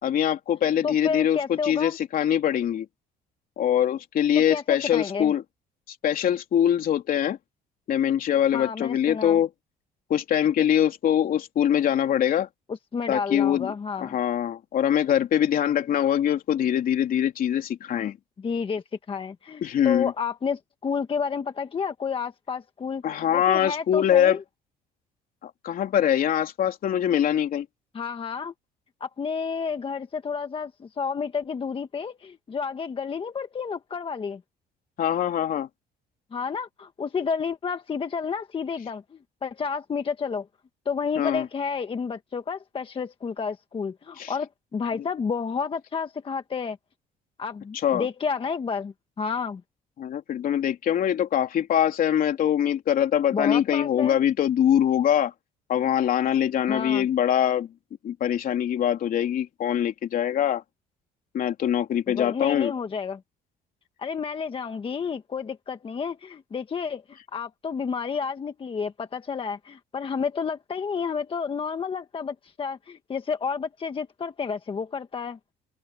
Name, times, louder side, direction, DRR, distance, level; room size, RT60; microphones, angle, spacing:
voice 1, 0.0-2.8 3.6-5.4 6.0-7.4 7.9-9.5 10.1-12.5 13.1-13.7 14.0-18.2 19.6-20.1 23.0-24.4 25.4-27.6 35.0-35.7 41.2-41.5 44.2-44.3 47.8-48.1 50.0-55.3 55.7-57.7 58.0-60.6 61.3-62.7, left 10 dB, 55° left, 3.3 m, -23 dB
voice 2, 0.8-2.0 4.3-5.3 8.5-9.4 12.7-14.2 18.4-24.4 27.9-28.5 29.0-34.4 36.3-40.5 40.8-46.8 47.4-49.6 53.3-54.2 56.7-57.1 62.1-63.2 64.0-75.4, left 6 dB, 30° left, 1.3 m, -30 dB
open air
cardioid pair, 110°, 17 cm